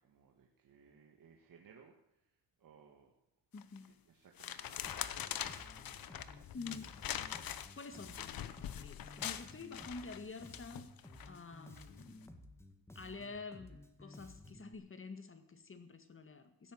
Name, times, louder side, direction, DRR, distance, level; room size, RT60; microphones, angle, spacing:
voice 1, 0.0-1.9 2.6-3.1 4.1-5.5 5.8-6.0, right 6 dB, 50° right, 1 dB, 1.9 m, -63 dB
voice 2, 3.5-4.0 6.5-7.0 7.8-11.0 11.3-12.3 13.0-16.7, left 4 dB, 30° left, 9 dB, 1.7 m, -49 dB
sound 1, 3.6-3.9 4.4-11.3 11.8-12.0, left 10 dB, 55° left, 0.9 m, -43 dB
Bass guitar, 4.9-14.7, left 1 dB, 5° left, 1.8 m, -55 dB
16.0 x 8.7 x 7.9 m, 0.81 s
cardioid pair, 90°, 41 cm